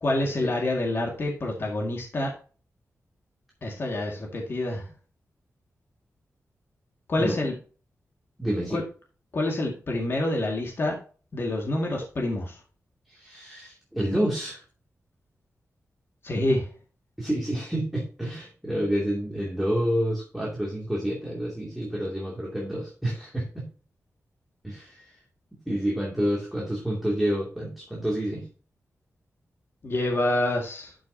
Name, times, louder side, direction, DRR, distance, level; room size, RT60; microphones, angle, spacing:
voice 1, 0.0-2.3 3.6-4.8 7.1-7.5 8.7-8.8 9.3-11.0 11.3-12.6 16.2-16.6 29.8-30.9, left 1 dB, 45° left, 0 dB, 2.0 m, -27 dB
voice 2, 7.2-7.5 8.4-8.8 13.1-14.6 17.2-23.7 24.6-25.2 25.7-28.5, equal, ahead, -4 dB, 2.5 m, -29 dB
12.5 x 6.2 x 2.8 m, 0.38 s
wide cardioid pair, 160°, 5 cm